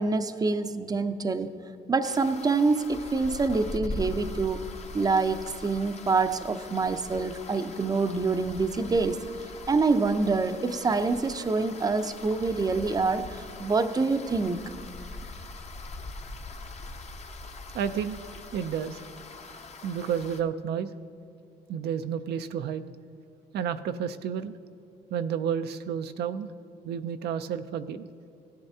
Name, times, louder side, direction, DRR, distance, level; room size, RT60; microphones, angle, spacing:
voice 1, 0.0-1.6 1.9-4.7 4.9-9.2 9.7-14.6, right 4 dB, 20° right, 10 dB, 0.6 m, -26 dB
sound 1, 2.0-20.4, left 2 dB, 40° left, 0.8 m, -42 dB
voice 2, 17.7-18.2 18.5-19.0 19.8-20.9 21.7-22.8 23.5-24.6 25.1-26.5 26.8-28.1, right 8 dB, 70° right, 9 dB, 0.5 m, -31 dB
16.0 x 10.5 x 2.8 m, 2.6 s
cardioid pair, 85°, 17 cm